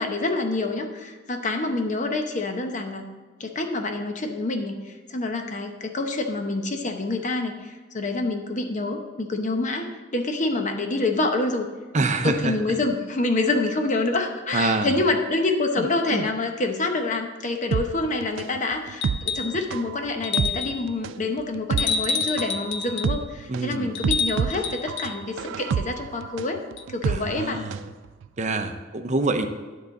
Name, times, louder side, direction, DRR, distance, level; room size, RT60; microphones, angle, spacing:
voice 1, 0.0-3.1 3.4-11.7 12.2-26.6 26.9-27.7, left 2 dB, 40° left, 4 dB, 0.8 m, -27 dB
voice 2, 11.9-12.8 14.5-15.0 15.8-16.3 23.5-23.9 27.0-27.8 28.4-29.5, right 2 dB, 40° right, 7 dB, 0.7 m, -26 dB
sound 1, 17.7-27.9 28.2-28.3, right 7 dB, 70° right, 0.3 m, -29 dB
sound 2, 19.0-19.6 20.2-20.8 21.8-23.2 23.9-25.1 26.8-26.9, left 6 dB, 65° left, 0.6 m, -28 dB
10.0 x 3.9 x 7.0 m, 1.3 s
head